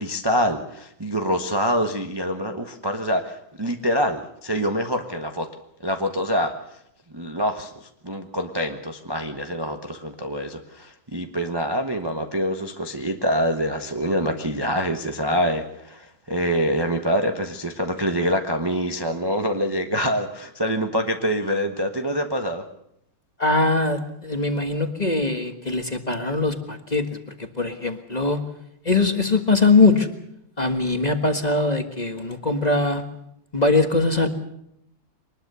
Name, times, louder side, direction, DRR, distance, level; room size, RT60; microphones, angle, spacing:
voice 1, 0.0-5.5 5.8-6.5 7.1-22.6, equal, 15° right, 4 dB, 0.9 m, -25 dB
voice 2, 23.4-28.4 28.8-30.1 30.6-33.0 33.5-34.3, left 3 dB, 25° left, 6 dB, 1.5 m, -21 dB
23.5 x 20.0 x 6.9 m, 0.76 s
omnidirectional pair, 2.1 m